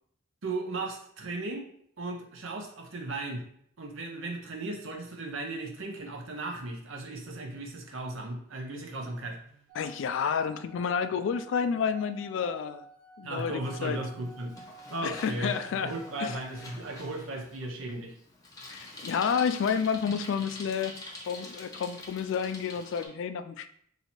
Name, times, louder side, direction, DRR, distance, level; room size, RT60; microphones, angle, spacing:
voice 1, 0.4-1.6 2.0-3.4 3.8-9.7 13.2-14.6 14.9-18.1, right 2 dB, 80° right, 2 dB, 0.7 m, -36 dB
sound 1, 9.7-16.7, right 3 dB, 45° right, 0.8 m, -52 dB
voice 2, 9.8-12.8 13.2-14.0 15.0-15.9 16.2-16.4 18.7-21.0 21.3-23.7, left 6 dB, 70° left, 11 dB, 0.3 m, -30 dB
Bicycle, 13.6-23.1, left 2 dB, 20° left, 0.7 m, -47 dB
2.9 x 2.7 x 4.2 m, 0.65 s
head